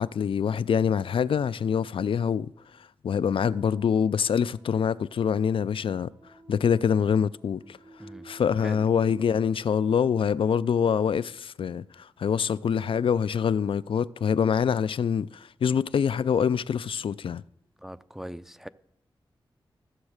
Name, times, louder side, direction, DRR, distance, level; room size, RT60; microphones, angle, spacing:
voice 1, 0.0-2.5 3.0-6.1 6.5-7.8 8.2-17.4, left 7 dB, 75° left, 0.4 m, -25 dB
sound 1, 3.2-9.5, right 2 dB, 45° right, 3.1 m, -54 dB
voice 2, 17.8-18.7, equal, 5° right, 0.5 m, -40 dB
15.0 x 7.2 x 6.5 m
cardioid pair, 65°, 9 cm